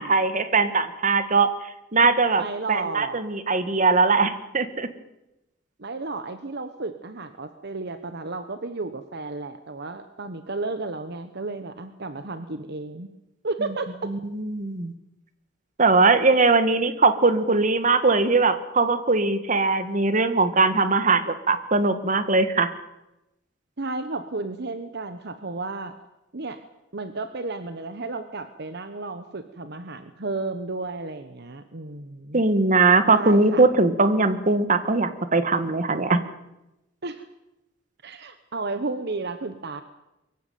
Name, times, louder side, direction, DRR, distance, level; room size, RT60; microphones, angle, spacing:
voice 1, 0.0-1.5 1.9-2.4 2.7-4.9 14.1-14.9 15.8-22.7 32.3-36.2, right 3 dB, 40° right, 11 dB, 1.7 m, -20 dB
voice 2, 2.4-3.2 5.8-13.1 13.4-14.1 23.8-26.0 26.3-26.6 26.9-32.4 33.0-33.7 37.0-37.3 38.0-39.8, right 3 dB, 60° right, 10 dB, 1.2 m, -33 dB
23.5 x 15.5 x 9.3 m, 0.93 s
head